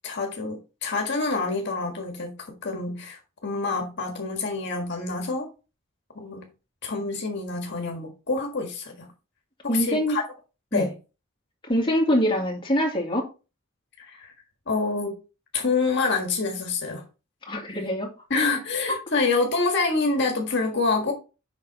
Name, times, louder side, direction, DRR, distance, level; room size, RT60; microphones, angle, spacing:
voice 1, 0.0-5.5 6.1-6.4 6.8-9.1 9.6-10.2 10.7-10.9 14.0-14.3 14.7-15.2 15.5-17.0 18.3-21.1, left 3 dB, 60° left, 1.6 m, -27 dB
voice 2, 9.7-10.2 10.7-10.9 11.6-13.2 17.5-18.1 18.9-19.0, equal, 25° left, 2.2 m, -24 dB
7.4 x 5.4 x 4.2 m
head